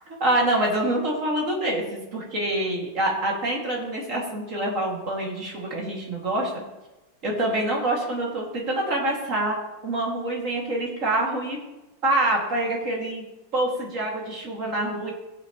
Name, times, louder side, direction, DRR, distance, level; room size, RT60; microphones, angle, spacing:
voice 1, 0.2-6.6 7.2-9.6 9.8-11.6 12.0-13.2 13.5-15.1, right 1 dB, 40° right, -2 dB, 2.5 m, -26 dB
18.0 x 7.9 x 3.0 m, 1.1 s
omnidirectional pair, 2.2 m